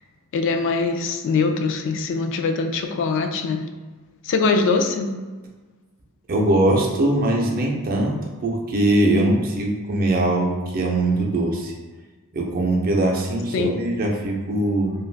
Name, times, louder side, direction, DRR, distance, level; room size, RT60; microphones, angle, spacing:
voice 1, 0.3-3.6 4.2-5.1 13.5-13.7, left 4 dB, 55° left, 5 dB, 0.3 m, -22 dB
voice 2, 6.3-11.7 12.3-14.9, right 1 dB, 40° right, 0 dB, 0.5 m, -21 dB
2.5 x 2.3 x 3.2 m, 1.3 s
head